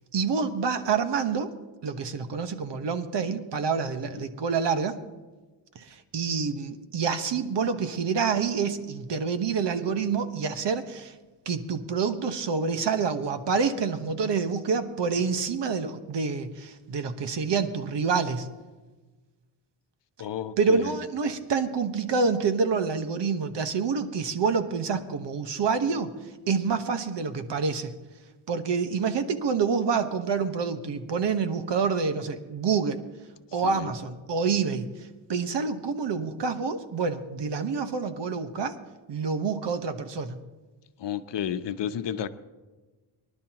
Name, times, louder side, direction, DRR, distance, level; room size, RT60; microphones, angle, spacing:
voice 1, 0.1-1.5 1.8-5.0 5.7-11.1 11.4-18.5 20.6-26.1 26.5-27.9 28.5-33.0 33.5-34.9 35.3-38.7 39.1-40.4, right 5 dB, 60° right, 9 dB, 1.4 m, -27 dB
voice 2, 20.2-21.0 33.6-33.9 41.0-42.3, left 9 dB, 60° left, 10 dB, 0.9 m, -32 dB
24.0 x 11.5 x 3.0 m, 1.2 s
cardioid pair, 75°, 48 cm